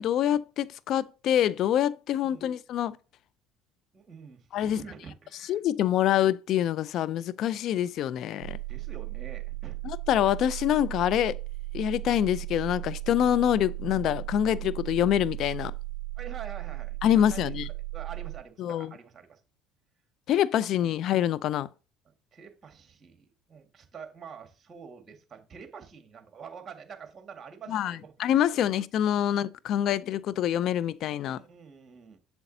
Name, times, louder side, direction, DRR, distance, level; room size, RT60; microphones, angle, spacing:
voice 1, 0.0-3.0 4.5-4.8 5.5-8.6 9.8-11.4 11.7-15.7 17.0-17.7 18.6-18.9 20.3-21.7 27.7-31.4, left 11 dB, 60° left, 0.4 m, -26 dB
voice 2, 3.9-5.6 8.7-9.9 16.2-17.6 17.9-19.4 20.6-20.8 22.1-28.1 28.5-28.7 29.3-29.4 29.8-30.0 31.3-32.2, right 6 dB, 35° right, 1.9 m, -47 dB
sound 1, 8.4-18.4, right 24 dB, 75° right, 0.5 m, -36 dB
7.9 x 7.1 x 2.8 m
hypercardioid pair, 65°, 0 cm